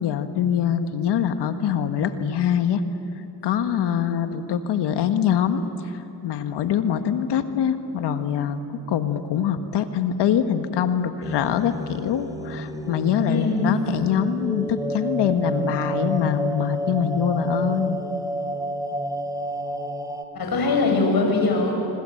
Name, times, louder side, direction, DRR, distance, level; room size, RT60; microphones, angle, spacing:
voice 1, 0.0-2.8 3.4-18.0, left 8 dB, 75° left, 8 dB, 1.7 m, -24 dB
sound 1, 11.2-20.2, right 1 dB, 10° right, 3.4 m, -30 dB
voice 2, 13.3-13.7 20.3-21.7, left 3 dB, 60° left, 1 dB, 7.3 m, -21 dB
25.5 x 25.0 x 7.9 m, 2.7 s
supercardioid pair, 60°, 42 cm